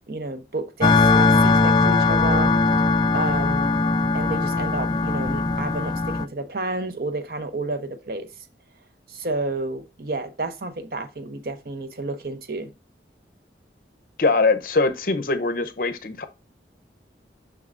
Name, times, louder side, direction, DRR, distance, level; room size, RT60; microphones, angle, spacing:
voice 1, 0.1-2.9 3.1-3.8 4.1-8.3 9.1-12.7, right 2 dB, 55° right, 0.7 m, -30 dB
sound 1, 0.8-6.2, left 3 dB, 25° left, 0.3 m, -20 dB
voice 2, 14.2-16.3, left 3 dB, 55° left, 0.7 m, -22 dB
6.4 x 6.0 x 2.5 m
head